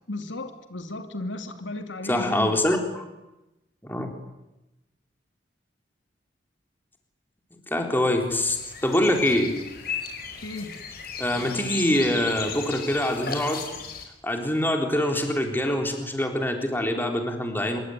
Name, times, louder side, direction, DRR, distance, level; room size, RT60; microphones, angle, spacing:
voice 1, 0.1-2.7 10.4-10.7, left 2 dB, 80° left, 7 dB, 2.8 m, -34 dB
voice 2, 2.0-3.0 3.8-4.1 7.7-9.6 11.2-13.6 14.2-17.8, left 1 dB, 10° left, 3 dB, 3.8 m, -24 dB
sound 1, 8.3-14.1, left 6 dB, 50° left, 4.9 m, -36 dB
26.5 x 23.5 x 9.6 m, 0.96 s
head